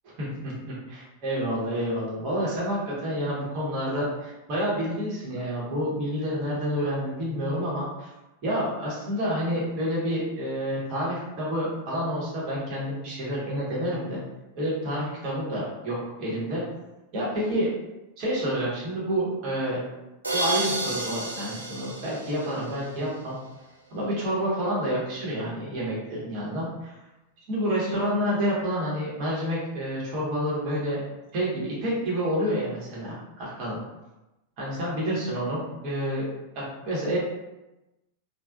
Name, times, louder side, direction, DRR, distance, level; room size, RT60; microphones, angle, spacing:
voice 1, 0.0-8.1 8.4-14.2 14.5-16.6 17.1-17.7 18.2-19.8 20.3-23.4 23.9-26.9 27.5-31.0 31.3-33.8 34.6-36.2 36.8-37.2, equal, 40° right, -6 dB, 1.1 m, -29 dB
sound 1, 20.2-23.1, right 2 dB, 80° right, 0.5 m, -31 dB
3.3 x 2.1 x 2.4 m, 1.0 s
figure-of-eight pair, 90°, 0 cm